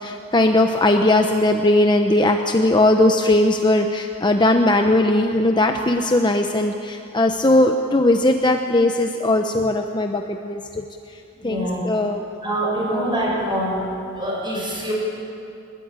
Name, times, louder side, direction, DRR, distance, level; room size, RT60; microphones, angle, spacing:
voice 1, 0.0-10.8 11.4-12.2 12.9-13.0, left 1 dB, 20° left, 4 dB, 0.9 m, -19 dB
voice 2, 11.4-11.8 12.4-13.9 14.2-14.9, right 1 dB, 20° right, -2 dB, 7.0 m, -24 dB
22.0 x 21.5 x 9.0 m, 2.6 s
head